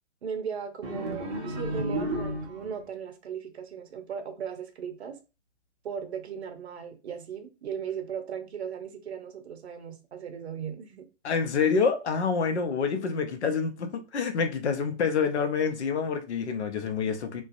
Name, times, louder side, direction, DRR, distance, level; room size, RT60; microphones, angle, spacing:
voice 1, 0.2-5.2 5.8-11.1 12.6-12.7, right 7 dB, 65° right, 0.6 m, -37 dB
sound 1, 0.8-2.9, right 1 dB, 25° right, 0.4 m, -32 dB
voice 2, 11.2-17.4, left 5 dB, 75° left, 0.6 m, -27 dB
2.4 x 2.3 x 2.4 m
figure-of-eight pair, 130°, 34 cm